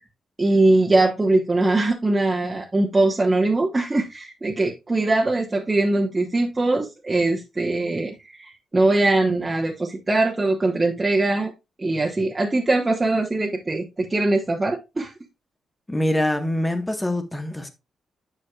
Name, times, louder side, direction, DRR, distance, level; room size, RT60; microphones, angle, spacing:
voice 1, 0.4-11.5 11.8-15.1, right 2 dB, 25° right, 1.2 m, -21 dB
voice 2, 15.9-17.7, left 1 dB, 10° left, 1.5 m, -24 dB
9.7 x 6.3 x 2.4 m
cardioid pair, 95°, 0 cm